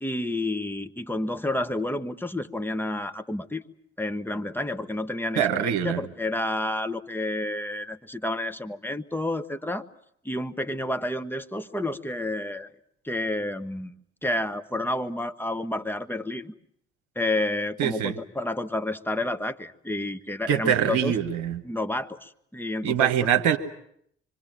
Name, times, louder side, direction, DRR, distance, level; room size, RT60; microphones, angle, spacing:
voice 1, 0.0-3.6 4.0-9.8 10.2-12.7 13.0-13.9 14.2-16.5 17.1-21.2 21.6-23.1, left 1 dB, 5° left, 7 dB, 1.4 m, -30 dB
voice 2, 5.4-6.0 17.8-18.2 20.5-21.6 22.8-23.6, right 9 dB, 70° right, 8 dB, 1.3 m, -23 dB
25.5 x 24.0 x 7.6 m, 0.70 s
hypercardioid pair, 45°, 33 cm